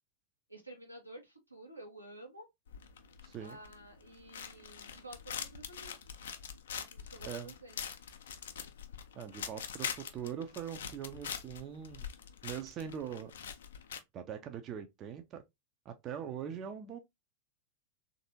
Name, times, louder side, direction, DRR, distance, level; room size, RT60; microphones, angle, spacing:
voice 1, 0.5-2.5 3.4-5.9 6.7-7.9, right 1 dB, 90° right, 1.0 m, -51 dB
sound 1, 2.7-14.0, left 7 dB, 60° left, 0.4 m, -44 dB
voice 2, 3.2-3.6 7.2-7.5 9.1-12.1 12.4-13.3 14.1-15.4 15.9-17.0, right 8 dB, 30° right, 0.5 m, -42 dB
3.3 x 2.6 x 2.7 m
figure-of-eight pair, 90°, 0 cm